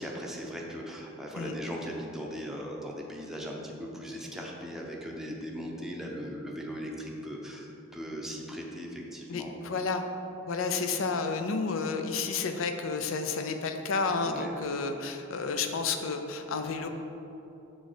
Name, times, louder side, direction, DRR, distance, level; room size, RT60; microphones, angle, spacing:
voice 1, 0.0-9.6 14.2-14.5, equal, ahead, -2 dB, 0.6 m, -39 dB
voice 2, 9.3-10.0 10.5-16.9, left 4 dB, 75° left, 6 dB, 0.5 m, -31 dB
6.2 x 3.8 x 5.0 m, 2.9 s
head